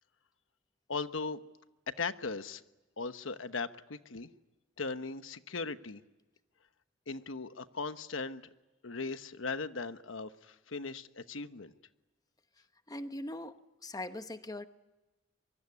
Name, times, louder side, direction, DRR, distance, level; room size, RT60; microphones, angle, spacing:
voice 1, 0.9-1.4 1.9-2.6 3.0-4.3 4.8-6.0 7.1-8.4 8.8-11.7, left 4 dB, 80° left, 11 dB, 1.1 m, -38 dB
voice 2, 12.9-14.6, left 1 dB, 20° left, 9 dB, 1.0 m, -41 dB
24.0 x 24.0 x 9.6 m, 1.1 s
head